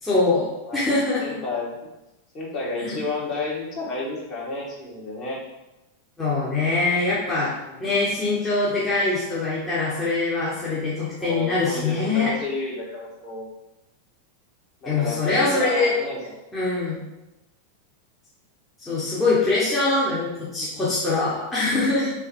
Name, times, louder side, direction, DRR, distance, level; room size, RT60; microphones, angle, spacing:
voice 1, 0.0-1.4 2.8-3.0 6.2-7.5 7.8-12.3 14.9-15.9 16.5-17.0 18.8-22.1, left 3 dB, 10° left, -8 dB, 1.1 m, -23 dB
voice 2, 1.2-1.7 2.3-5.4 7.6-7.9 11.2-13.5 14.8-16.2 18.8-18.9 20.4-20.7, left 2 dB, 30° left, -5 dB, 1.5 m, -31 dB
3.9 x 3.2 x 3.7 m, 0.97 s
figure-of-eight pair, 90°, 0 cm